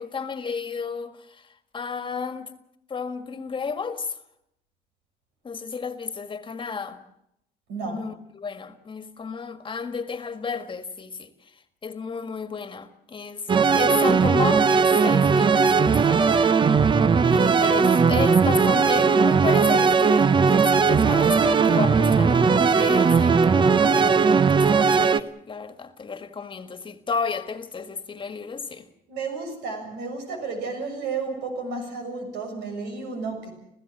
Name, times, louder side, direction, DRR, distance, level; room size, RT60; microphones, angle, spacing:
voice 1, 0.0-2.5 2.9-4.2 5.4-7.0 7.8-16.5 17.3-28.9, left 5 dB, 30° left, 1.7 m, -32 dB
voice 2, 7.7-8.0 29.1-33.5, right 4 dB, 85° right, 7.0 m, -32 dB
digital arpeggio, 13.5-25.2, right 5 dB, 30° right, 0.7 m, -18 dB
27.0 x 15.5 x 7.5 m
cardioid pair, 110°, 17 cm